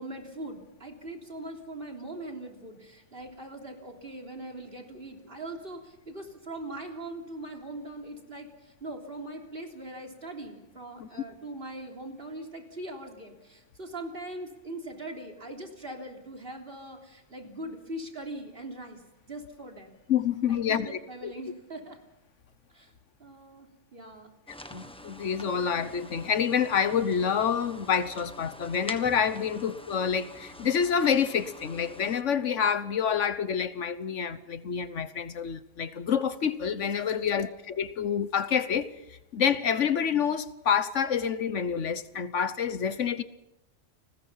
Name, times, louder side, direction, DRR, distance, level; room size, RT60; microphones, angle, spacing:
voice 1, 0.0-19.0 19.3-19.9 20.5-22.0 22.7-22.9 23.2-24.3 37.1-37.5, right 1 dB, 50° right, 3.8 m, -41 dB
voice 2, 20.1-21.3 24.7-38.9 39.3-43.2, left 7 dB, 75° left, 1.4 m, -27 dB
sound 1, 24.5-32.2, left 1 dB, 5° left, 1.2 m, -46 dB
30.0 x 20.5 x 5.7 m
omnidirectional pair, 1.3 m